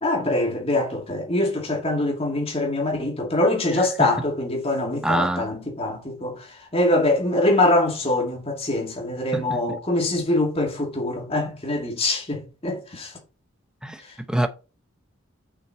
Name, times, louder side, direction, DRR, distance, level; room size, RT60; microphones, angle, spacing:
voice 1, 0.0-6.4 6.7-13.1, left 2 dB, 30° left, 2.4 m, -23 dB
voice 2, 3.7-4.1 5.0-5.5 9.3-9.6 13.8-14.0 14.3-14.5, right 1 dB, 5° right, 0.7 m, -25 dB
6.3 x 5.9 x 4.3 m
head